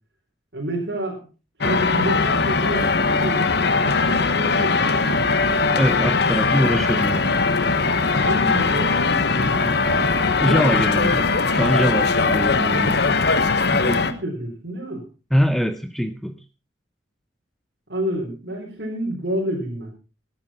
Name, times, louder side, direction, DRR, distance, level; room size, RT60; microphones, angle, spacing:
voice 1, 0.5-1.2 1.6-5.2 8.2-9.9 13.7-15.0 17.9-19.9, right 1 dB, 60° right, -4 dB, 3.8 m, -29 dB
sound 1, 1.6-14.1, left 4 dB, 60° left, 1.1 m, -20 dB
voice 2, 5.8-7.2 10.4-13.0 15.3-16.4, equal, ahead, 10 dB, 0.6 m, -23 dB
16.5 x 10.5 x 4.2 m, 0.32 s
head